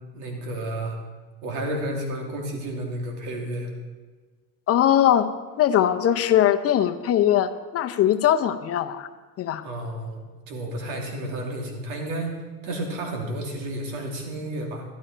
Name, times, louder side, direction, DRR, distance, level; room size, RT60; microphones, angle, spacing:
voice 1, 0.1-1.0 1.4-3.7 9.6-10.2 10.5-12.3 12.6-14.8, right 1 dB, 75° right, 1 dB, 3.0 m, -31 dB
voice 2, 4.7-5.3 5.6-9.1 9.4-9.6, left 11 dB, 35° left, 9 dB, 0.7 m, -21 dB
12.5 x 11.5 x 4.5 m, 1.3 s
supercardioid pair, 105°, 42 cm